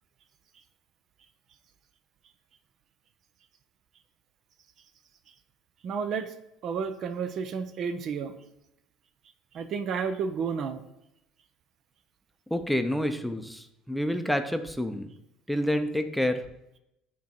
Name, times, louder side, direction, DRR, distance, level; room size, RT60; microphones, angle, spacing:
voice 1, 5.8-6.3 6.6-8.4 9.5-10.8, right 6 dB, 55° right, 9 dB, 0.6 m, -31 dB
voice 2, 12.5-15.1 15.5-16.4, equal, ahead, 7 dB, 0.6 m, -28 dB
8.0 x 3.1 x 4.3 m, 0.84 s
hypercardioid pair, 70°, 0 cm